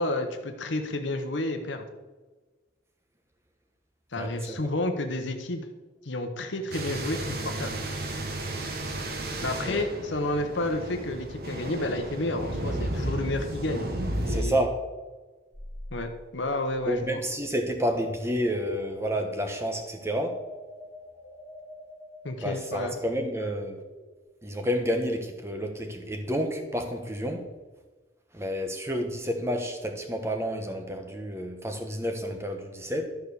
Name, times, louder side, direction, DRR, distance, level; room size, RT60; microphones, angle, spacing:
voice 1, 0.0-1.9 4.1-5.6 6.0-7.8 9.4-13.9 14.2-14.7 15.9-17.2 22.2-22.9, left 2 dB, 80° left, 5 dB, 1.0 m, -30 dB
voice 2, 4.2-4.7 9.6-9.9 14.3-14.8 16.9-20.4 22.4-23.8 24.4-27.5 28.3-33.1, equal, 15° right, 5 dB, 1.0 m, -30 dB
sound 1, 6.7-14.4, right 1 dB, 50° right, 1.2 m, -33 dB
sound 2, 15.5-24.2, left 1 dB, 10° left, 1.9 m, -48 dB
12.0 x 4.6 x 6.8 m, 1.3 s
head